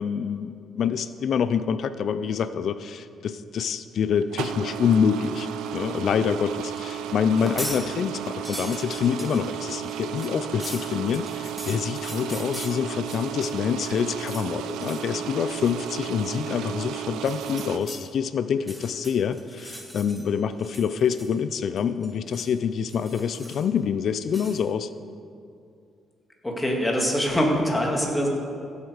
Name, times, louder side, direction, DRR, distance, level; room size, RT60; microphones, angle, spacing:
voice 1, 0.0-24.9, left 7 dB, 65° left, 13 dB, 0.4 m, -26 dB
sound 1, 4.1-17.8, right 9 dB, 90° right, 0.6 m, -34 dB
sound 2, 7.3-7.8 8.2-13.5 13.8-14.5 14.8-15.1 15.5-15.8 17.1-18.0 18.5-20.3 20.6-21.5 21.8-22.5 22.9-23.8 24.3-24.6, equal, 5° right, 1.9 m, -40 dB
voice 2, 26.4-28.3, equal, 10° left, -1 dB, 2.5 m, -23 dB
16.0 x 8.0 x 5.0 m, 2.4 s
cardioid pair, 90°, 0 cm